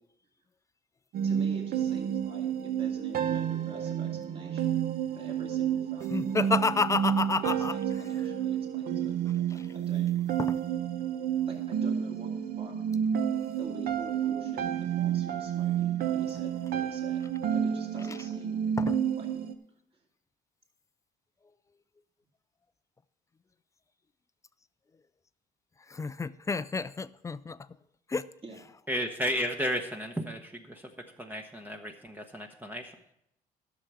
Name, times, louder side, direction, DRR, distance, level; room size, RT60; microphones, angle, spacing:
sound 1, 1.1-19.5, right 9 dB, 60° right, 0.8 m, -30 dB
voice 1, 1.2-4.9 5.1-6.7 7.4-9.1 9.5-10.1 11.4-12.7 13.6-17.2 17.5-18.6 19.1-19.4 19.9-20.0 28.4-28.6, right 2 dB, 35° right, 0 dB, 2.6 m, -47 dB
voice 2, 6.1-7.7 10.4-10.5 18.8-18.9 26.0-27.6 28.1-28.2, left 4 dB, 20° left, 15 dB, 0.4 m, -29 dB
voice 3, 28.9-30.9 31.2-33.0, equal, 10° right, 4 dB, 0.9 m, -33 dB
11.0 x 6.8 x 6.0 m, 0.78 s
cardioid pair, 110°, 17 cm